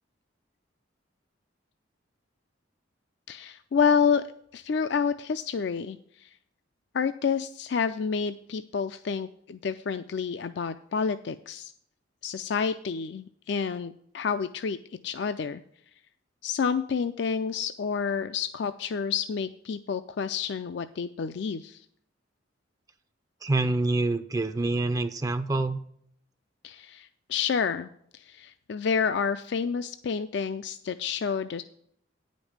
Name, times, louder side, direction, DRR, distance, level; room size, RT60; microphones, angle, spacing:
voice 1, 3.3-4.2 4.5-6.3 6.9-11.7 12.2-14.8 15.0-15.6 16.4-21.8 26.6-31.6, left 6 dB, 60° left, 10 dB, 0.4 m, -29 dB
voice 2, 23.4-25.8, right 2 dB, 20° right, 10 dB, 0.4 m, -26 dB
9.9 x 5.2 x 7.2 m, 0.67 s
head